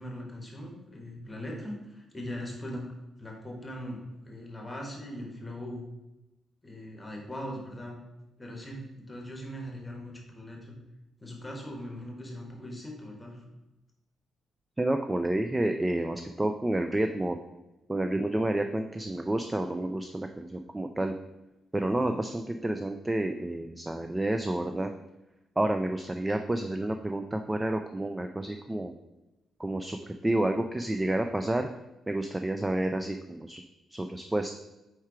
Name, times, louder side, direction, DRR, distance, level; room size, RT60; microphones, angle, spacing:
voice 1, 0.0-2.8 3.2-5.8 6.6-8.0 8.4-10.8 11.2-13.6, equal, 15° left, 0 dB, 1.2 m, -40 dB
voice 2, 14.8-17.4 17.9-21.1 21.7-24.9 25.6-28.9 29.6-31.7 32.1-33.6 33.9-34.5, right 1 dB, 10° right, 6 dB, 0.3 m, -29 dB
4.6 x 4.4 x 4.8 m, 0.98 s
cardioid pair, 140°, 0 cm